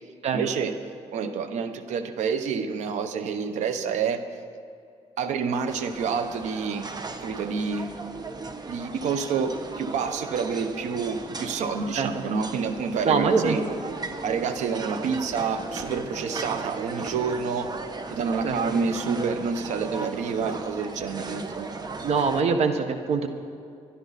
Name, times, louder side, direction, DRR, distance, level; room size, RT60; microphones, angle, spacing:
voice 1, 0.3-0.8 1.1-4.2 5.2-6.9 7.2-7.9 8.7-13.7 14.2-17.7 18.1-21.7, right 5 dB, 85° right, 9 dB, 1.0 m, -28 dB
sound 1, 5.7-22.4, right 3 dB, 35° right, 1.2 m, -37 dB
voice 2, 13.0-13.6 18.4-18.6 22.0-23.3, right 5 dB, 65° right, 7 dB, 1.4 m, -23 dB
25.0 x 11.0 x 4.2 m, 2.4 s
cardioid pair, 80°, 12 cm